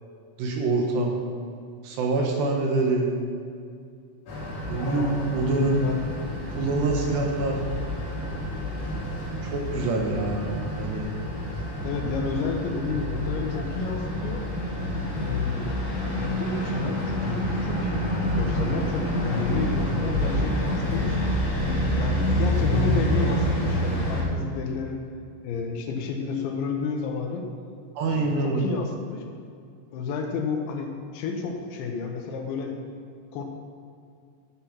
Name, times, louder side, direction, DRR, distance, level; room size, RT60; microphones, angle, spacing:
voice 1, 0.4-1.2 1.8-3.1 4.7-5.8 6.6-7.6 9.4-10.5 10.8-11.2 28.0-28.6, right 2 dB, 70° right, 0 dB, 2.8 m, -25 dB
sound 1, 4.3-24.2, equal, 45° left, 3.6 m, -28 dB
voice 2, 11.8-14.5 15.2-15.8 16.2-21.4 22.0-25.0 25.4-27.5 28.1-29.2 29.9-32.8 33.3-33.4, left 5 dB, 75° left, 2 dB, 2.9 m, -31 dB
13.5 x 7.0 x 5.9 m, 2.3 s
omnidirectional pair, 6.0 m